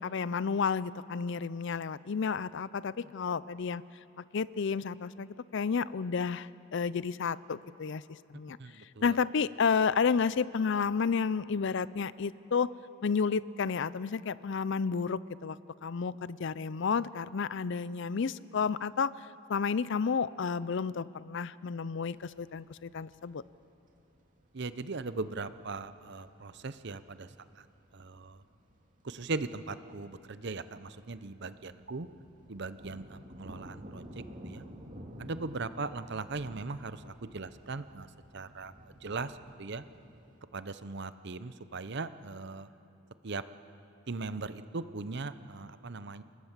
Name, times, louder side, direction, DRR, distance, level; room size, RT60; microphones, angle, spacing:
voice 1, 0.0-3.8 4.3-8.0 8.3-8.6 9.0-12.7 13.0-19.1 19.5-23.4, left 5 dB, 55° left, 18 dB, 0.5 m, -31 dB
voice 2, 8.6-9.2 24.5-27.3 27.6-27.7 27.9-28.4 29.0-32.1 32.5-34.6 35.2-38.1 38.3-39.8 40.5-42.7 43.2-43.4 44.1-46.2, right 3 dB, 55° right, 13 dB, 0.8 m, -39 dB
sound 1, 22.2-40.4, equal, 40° right, 2.4 m, -53 dB
28.5 x 19.0 x 7.4 m, 2.8 s
head